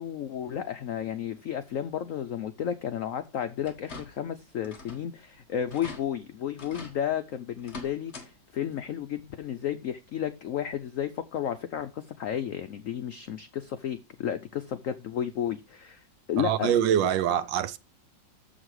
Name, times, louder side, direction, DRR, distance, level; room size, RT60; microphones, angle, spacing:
voice 1, 0.0-16.0 16.3-16.7, left 9 dB, 90° left, 0.7 m, -32 dB
sound 1, 3.6-4.3 4.6-5.1 5.4-5.5 5.7-6.0 6.6-7.0 7.6-8.3 8.6-8.7 10.1-10.2 10.7-10.8, left 3 dB, 40° left, 1.5 m, -43 dB
voice 2, 16.4-17.8, right 10 dB, 75° right, 1.4 m, -24 dB
7.3 x 6.4 x 4.7 m
omnidirectional pair, 2.1 m